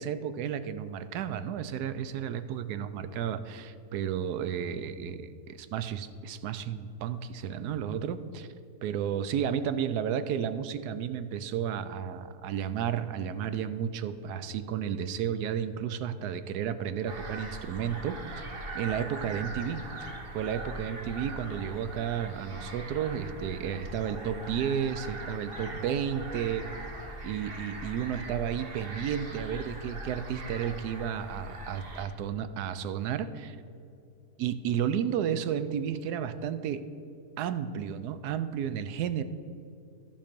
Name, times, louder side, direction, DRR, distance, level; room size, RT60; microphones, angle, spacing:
voice 1, 0.0-8.5 8.8-18.5 18.7-26.7 27.2-33.6 34.4-36.8 37.4-39.2, right 8 dB, 85° right, 12 dB, 1.2 m, -32 dB
sound 1, 17.1-32.1, right 1 dB, 40° right, 1.2 m, -41 dB
14.5 x 5.3 x 5.2 m, 2.6 s
omnidirectional pair, 1.7 m